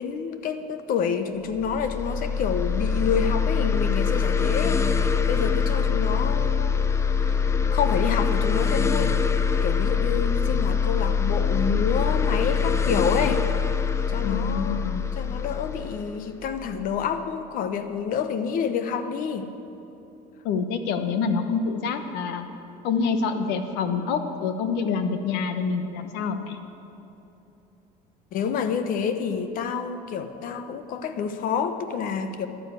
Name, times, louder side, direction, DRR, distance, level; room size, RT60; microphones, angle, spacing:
voice 1, 0.0-6.8 7.2-7.4 7.7-9.1 9.6-13.4 14.1-14.9 15.1-19.5 28.3-32.5, left 6 dB, 50° left, 9 dB, 0.9 m, -28 dB
sound 1, 1.6-17.0, left 6 dB, 15° left, 0.5 m, -24 dB
voice 2, 14.2-15.0 20.4-22.4 22.8-26.6, left 5 dB, 75° left, 8 dB, 1.2 m, -26 dB
11.5 x 9.8 x 8.2 m, 2.9 s
cardioid pair, 150°, 18 cm